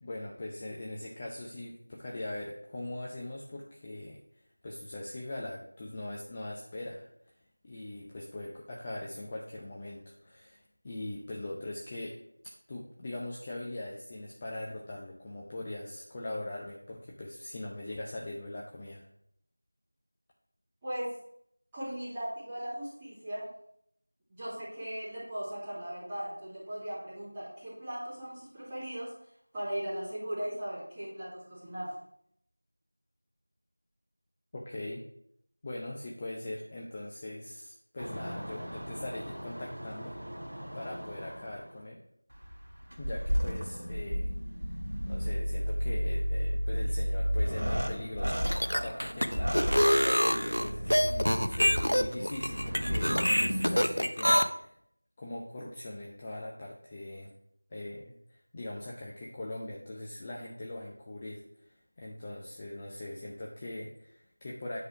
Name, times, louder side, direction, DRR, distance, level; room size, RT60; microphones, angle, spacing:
voice 1, 0.0-4.2 4.6-7.3 7.6-12.2 12.7-19.0 34.5-35.0 35.6-40.1 40.7-42.0 43.0-44.3 45.1-54.7 55.2-57.3 57.7-64.8, left 1 dB, 15° left, -3 dB, 0.5 m, -41 dB
voice 2, 20.8-21.1 21.7-23.5 24.3-29.1 29.5-31.9, right 1 dB, 5° right, -14 dB, 2.5 m, -38 dB
sound 1, 38.0-41.7 42.3-53.9, equal, 55° right, 1.7 m, -33 dB
sound 2, 48.3-54.4, equal, 85° left, 0.7 m, -26 dB
9.6 x 4.2 x 4.8 m, 0.70 s
figure-of-eight pair, 175°, 0 cm